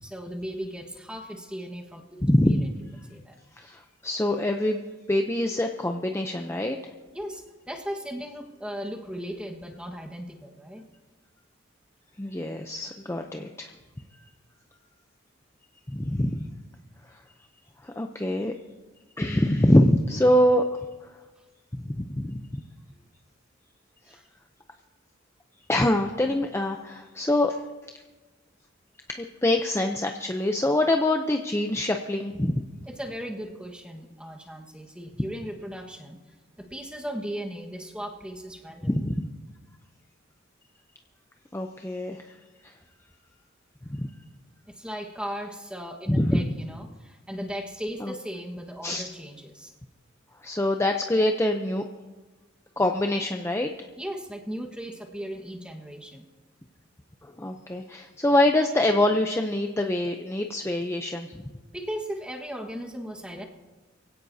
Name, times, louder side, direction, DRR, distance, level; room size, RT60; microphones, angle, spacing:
voice 1, 0.0-2.6 3.0-3.4 7.1-10.8 21.4-21.5 24.1-24.2 32.8-36.2 36.6-38.9 44.7-49.7 54.0-56.3 61.7-63.4, equal, 5° right, 1 dB, 1.4 m, -37 dB
voice 2, 2.2-2.7 3.6-4.8 5.1-6.8 12.2-13.7 15.9-16.5 17.8-18.5 19.2-20.9 21.7-22.4 25.7-27.6 29.1-32.7 38.8-39.3 41.5-42.3 42.6-42.7 43.9-44.1 46.1-46.5 48.0-48.1 48.8-49.0 50.4-51.8 52.8-53.7 57.2-61.4, left 1 dB, 15° left, 4 dB, 0.6 m, -24 dB
23.5 x 16.5 x 2.8 m, 1.2 s
head